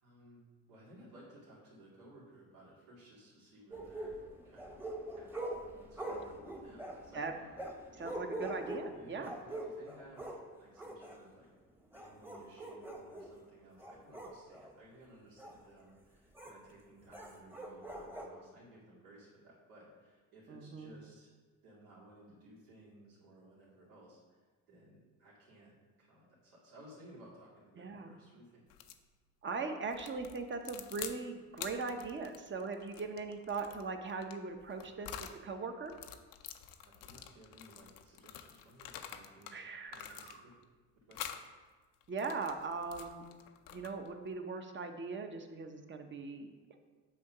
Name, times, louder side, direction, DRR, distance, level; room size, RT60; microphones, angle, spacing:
voice 1, 0.0-4.1 4.4-7.4 7.9-8.2 8.9-11.5 11.9-21.3 21.6-24.4 24.7-28.6 36.7-39.5 39.9-40.6 41.0-41.2, right 1 dB, 90° right, -8 dB, 2.2 m, -58 dB
sound 1, 3.7-10.4 10.8-11.2 11.8-13.3 13.8-14.7 15.4-15.6 16.4-16.5 17.1-18.3, right 1 dB, 5° right, 1.0 m, -44 dB
voice 2, 8.0-9.3 20.5-20.9 27.8-28.2 29.4-35.2 35.4-35.9 39.5-40.4 42.1-43.3 43.7-46.5, right 4 dB, 35° right, 5 dB, 0.8 m, -40 dB
sound 2, 28.7-29.0 29.9-31.2 31.5-35.4 35.9-39.6 39.9-40.6 41.1-41.5 42.0-44.1, left 10 dB, 75° left, 0.6 m, -48 dB
8.3 x 2.8 x 6.0 m, 1.4 s
cardioid pair, 85°, 34 cm